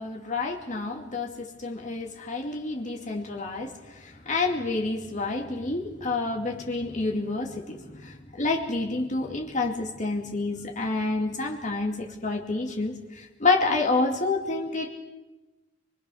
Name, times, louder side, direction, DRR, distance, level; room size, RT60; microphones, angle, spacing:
voice 1, 0.0-14.9, left 3 dB, 40° left, 1 dB, 2.3 m, -29 dB
23.5 x 22.0 x 6.4 m, 1.1 s
head